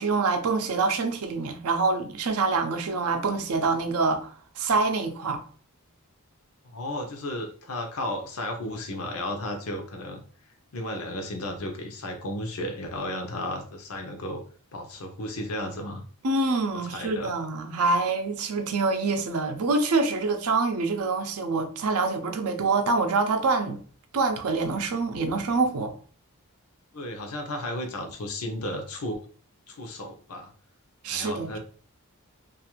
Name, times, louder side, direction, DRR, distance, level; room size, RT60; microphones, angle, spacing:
voice 1, 0.0-5.4 16.2-23.8 24.1-25.9 31.0-31.6, right 3 dB, 75° right, 0.5 m, -26 dB
voice 2, 6.7-10.2 10.7-14.4 14.7-16.0 16.7-17.3 26.9-29.2 29.7-30.5 31.1-31.6, left 1 dB, 70° left, 0.7 m, -34 dB
2.5 x 2.4 x 2.9 m
head